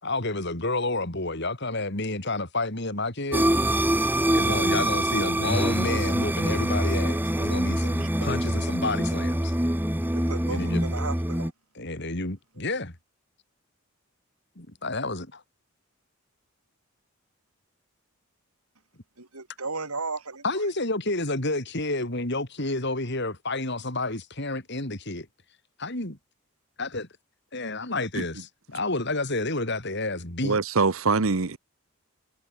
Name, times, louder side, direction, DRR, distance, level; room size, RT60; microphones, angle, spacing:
voice 1, 0.0-3.5 4.3-9.5 10.5-10.8 11.8-12.9 14.6-15.4 20.4-25.3 25.8-26.2 26.8-27.1 27.5-30.6, left 2 dB, 50° left, 4.0 m, -30 dB
sound 1, 3.3-11.5, right 1 dB, 10° right, 1.5 m, -25 dB
voice 2, 8.0-8.3 10.1-11.5 19.2-20.4, right 3 dB, 85° right, 4.3 m, -35 dB
voice 3, 30.4-31.6, right 4 dB, 70° right, 0.9 m, -23 dB
head